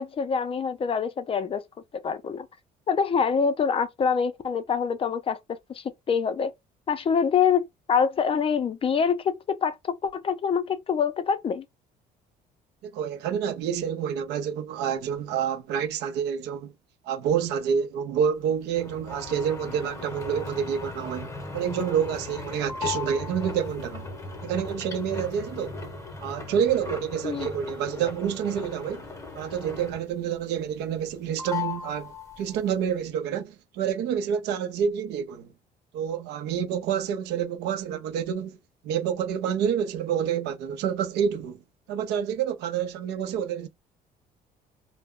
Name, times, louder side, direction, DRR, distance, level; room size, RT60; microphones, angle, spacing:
voice 1, 0.0-1.6 2.0-2.5 2.9-6.5 6.9-11.7 27.2-27.5, left 6 dB, 35° left, 0.4 m, -25 dB
voice 2, 12.8-16.7 17.0-24.1 24.4-25.8 26.2-29.1 29.3-35.5 35.9-38.6 38.8-41.6 41.9-43.7, right 8 dB, 80° right, 0.5 m, -28 dB
sound 1, 18.7-30.2 30.6-31.1 31.4-32.7, left 4 dB, 20° left, 0.8 m, -37 dB
2.2 x 2.0 x 3.6 m
cardioid pair, 110°, 17 cm